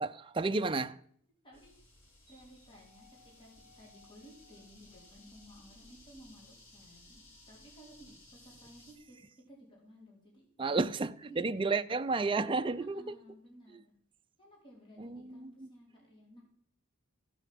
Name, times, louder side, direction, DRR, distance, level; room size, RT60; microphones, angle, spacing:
voice 1, 0.0-1.0 10.6-13.2 15.0-15.7, right 3 dB, 25° right, 0.5 m, -32 dB
voice 2, 1.4-1.8 2.3-3.5 3.8-10.5 11.3-11.7 12.7-13.8 14.4-16.4, equal, 25° left, 4.0 m, -56 dB
sound 1, 1.5-8.9, left 2 dB, 70° left, 5.5 m, -58 dB
15.5 x 6.3 x 7.7 m
head